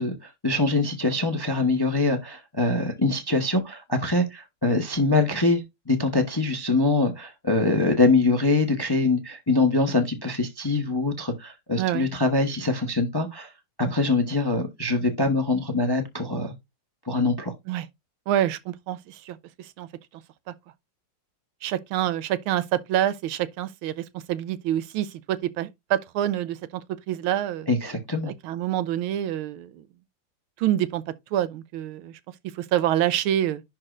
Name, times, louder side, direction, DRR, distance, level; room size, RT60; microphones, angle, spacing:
voice 1, 0.0-13.5 13.8-16.5 17.0-17.5 27.7-28.3, left 3 dB, 20° left, 0.6 m, -24 dB
voice 2, 11.8-12.1 17.7-17.9 18.3-19.9 21.6-26.8 27.1-27.7 28.3-29.8 30.6-31.0 31.3-32.2 32.5-33.6, right 11 dB, 80° right, 1.5 m, -27 dB
11.0 x 4.3 x 2.5 m
omnidirectional pair, 2.3 m